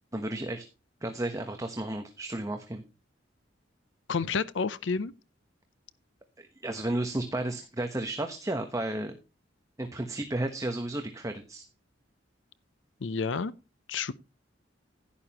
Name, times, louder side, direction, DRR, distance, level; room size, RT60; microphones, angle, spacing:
voice 1, 0.1-0.7 1.0-2.8 6.4-9.2 9.8-11.7, right 1 dB, 15° right, 1.1 m, -33 dB
voice 2, 4.1-5.1 13.0-13.5 13.9-14.1, left 5 dB, 70° left, 0.6 m, -30 dB
11.5 x 10.5 x 2.9 m
head